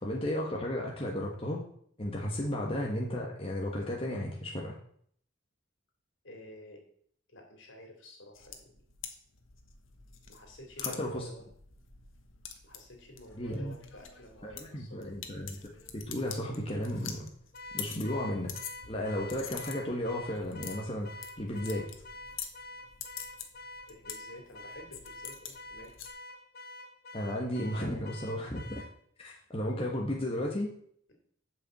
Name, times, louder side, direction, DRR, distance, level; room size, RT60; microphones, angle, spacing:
voice 1, 0.0-1.6 2.0-4.8 10.8-11.3 13.4-13.8 14.4-15.6 15.9-17.3 17.7-18.5 18.9-21.9 27.1-28.8 29.2-30.7, left 1 dB, 30° left, -2 dB, 1.3 m, -34 dB
voice 2, 6.2-6.8 7.3-8.8 10.3-11.5 12.6-15.1 17.7-17.9 21.6-21.7 23.9-26.0, left 1 dB, 70° left, 2 dB, 2.9 m, -51 dB
sound 1, 8.4-26.1, left 8 dB, 90° left, 1.3 m, -46 dB
Car / Alarm, 17.5-29.0, left 2 dB, 50° left, 0.9 m, -47 dB
7.9 x 5.4 x 7.6 m, 0.62 s
head